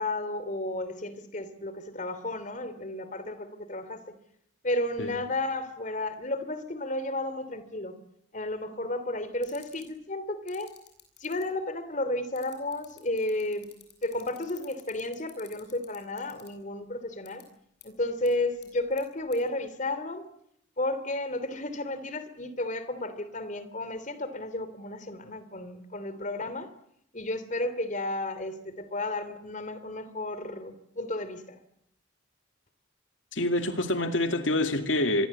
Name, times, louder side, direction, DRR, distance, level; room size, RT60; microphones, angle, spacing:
voice 1, 0.0-4.0 4.6-8.0 8.3-10.7 11.2-13.7 14.0-17.4 17.8-20.2 20.8-26.7 27.1-31.6, left 2 dB, 40° left, 13 dB, 3.0 m, -32 dB
sound 1, 9.4-9.8 10.5-11.4 12.3-16.5 17.2-17.4 17.8-17.9 18.2-18.3 18.6-19.0 19.3-19.4, left 13 dB, 55° left, 8.0 m, -50 dB
voice 2, 33.3-35.3, left 1 dB, 80° left, 7 dB, 2.3 m, -26 dB
26.5 x 23.0 x 8.4 m, 0.75 s
head